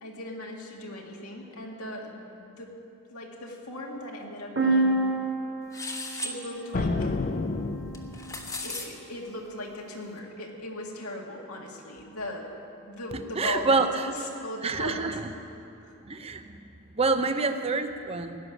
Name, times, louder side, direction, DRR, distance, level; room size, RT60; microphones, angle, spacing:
voice 1, 0.0-2.7 3.1-5.0 6.2-7.1 8.3-12.5 12.8-13.8 14.0-15.2 15.8-15.9, left 1 dB, 90° left, -1 dB, 2.1 m, -38 dB
sound 1, 4.6-8.3, right 2 dB, 60° right, 1.9 m, -29 dB
sound 2, 5.7-6.4 7.9-8.9, left 2 dB, 15° left, 1.1 m, -35 dB
sound 3, 6.7-8.5, left 3 dB, 40° left, 0.4 m, -30 dB
voice 2, 13.4-14.1 14.6-15.2 16.0-16.5 17.0-18.4, right 3 dB, 25° right, 8 dB, 0.7 m, -26 dB
17.0 x 6.8 x 9.9 m, 2.7 s
head